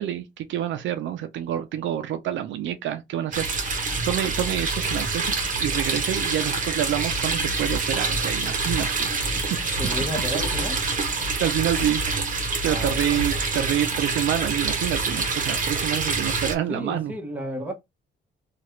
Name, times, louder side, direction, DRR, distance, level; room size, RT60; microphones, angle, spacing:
voice 1, 0.0-5.3 5.6-9.2 11.4-12.0 12.6-17.1, right 11 dB, 70° right, 0.5 m, -27 dB
sound 1, 3.3-16.5, right 3 dB, 40° right, 1.0 m, -26 dB
voice 2, 9.8-10.8 12.6-13.0 16.7-17.7, equal, 10° right, 1.2 m, -32 dB
2.9 x 2.4 x 3.1 m
cardioid pair, 90°, 20 cm